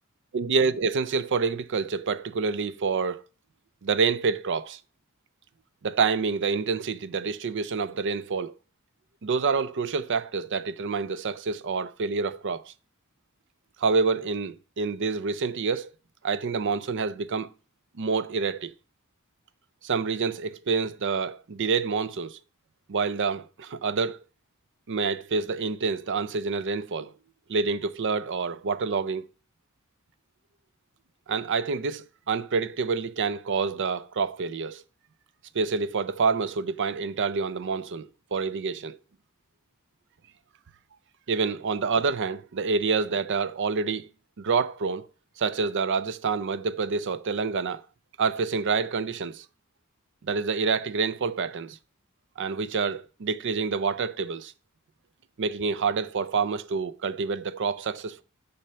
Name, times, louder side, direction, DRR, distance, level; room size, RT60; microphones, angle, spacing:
voice 1, 0.3-3.2 3.8-4.8 5.8-8.5 9.2-12.7 13.8-15.9 16.2-17.5 18.0-18.7 19.8-22.4 22.9-24.2 24.9-27.1 27.5-29.3 31.3-34.8 35.5-39.0 41.3-44.1 44.4-45.1 45.4-47.8 48.2-49.5 50.2-51.8 52.4-54.5 55.4-58.2, right 5 dB, 60° right, 0.5 m, -27 dB
7.5 x 4.3 x 6.7 m
head